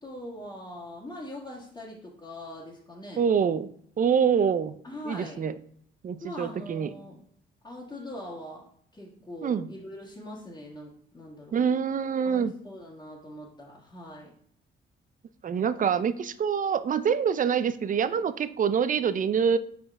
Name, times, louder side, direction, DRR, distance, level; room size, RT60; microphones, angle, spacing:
voice 1, 0.0-3.2 4.8-5.4 6.2-7.2 7.6-8.7 8.9-11.6 12.2-14.3, left 1 dB, 20° left, -6 dB, 1.8 m, -42 dB
voice 2, 3.2-3.7 4.0-4.8 5.1-5.5 6.0-6.9 9.4-9.7 11.5-12.5 15.4-19.6, right 7 dB, 40° right, 13 dB, 0.6 m, -25 dB
7.1 x 5.0 x 3.6 m, 0.63 s
cardioid pair, 90°, 20 cm